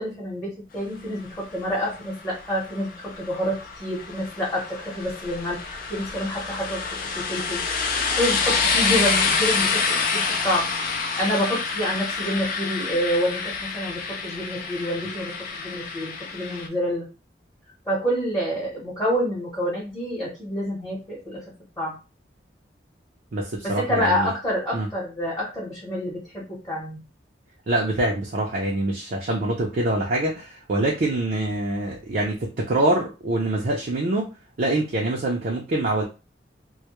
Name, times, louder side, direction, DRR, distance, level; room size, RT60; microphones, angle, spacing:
voice 1, 0.0-7.6 8.2-10.7 11.2-17.1 17.9-21.4 21.8-22.0 23.6-27.0, equal, 20° left, -6 dB, 0.9 m, -28 dB
sound 1, 1.7-16.7, left 4 dB, 50° left, 0.4 m, -27 dB
voice 2, 23.3-24.3 24.7-24.9 27.7-34.3 34.6-36.0, right 1 dB, 50° right, -2 dB, 0.5 m, -25 dB
2.2 x 2.0 x 2.9 m, 0.31 s
head